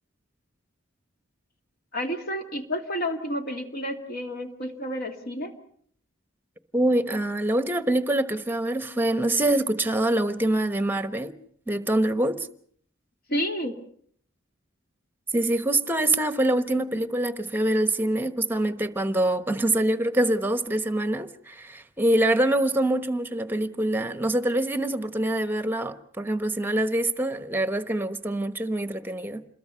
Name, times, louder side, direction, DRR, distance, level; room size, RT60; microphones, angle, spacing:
voice 1, 1.9-5.5 13.3-13.8, equal, 50° left, 2.5 m, -30 dB
voice 2, 6.7-11.3 11.7-12.5 15.3-29.5, right 1 dB, 10° right, 1.1 m, -25 dB
27.5 x 21.5 x 5.7 m
head